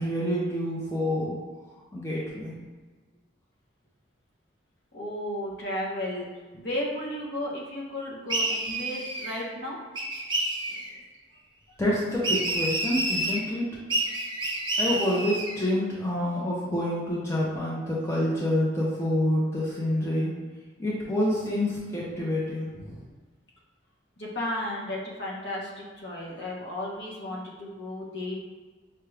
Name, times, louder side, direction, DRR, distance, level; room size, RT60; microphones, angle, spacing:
voice 1, 0.0-1.4 1.9-2.5 11.8-13.7 14.8-20.3 20.8-23.0, left 1 dB, 15° left, -6 dB, 0.7 m, -27 dB
voice 2, 4.9-6.3 6.6-9.8 24.2-28.4, left 1 dB, 60° left, -4 dB, 1.0 m, -34 dB
sound 1, 8.3-9.4 10.0-10.9 12.2-13.4 13.9-15.6, right 2 dB, 25° right, 0.5 m, -29 dB
5.6 x 2.4 x 3.3 m, 1.4 s
head